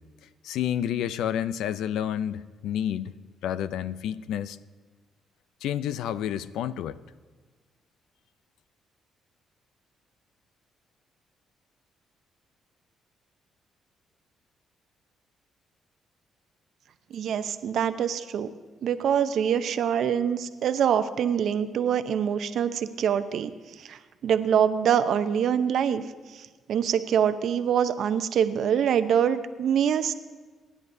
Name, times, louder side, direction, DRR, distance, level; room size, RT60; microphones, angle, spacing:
voice 1, 0.4-3.1 3.4-4.6 5.6-7.0, left 10 dB, 85° left, 15 dB, 0.4 m, -29 dB
voice 2, 17.1-18.5 18.8-23.5 23.9-26.0 26.7-30.1, right 8 dB, 70° right, 11 dB, 0.7 m, -24 dB
26.0 x 10.0 x 2.7 m, 1.4 s
cardioid pair, 90°, 0 cm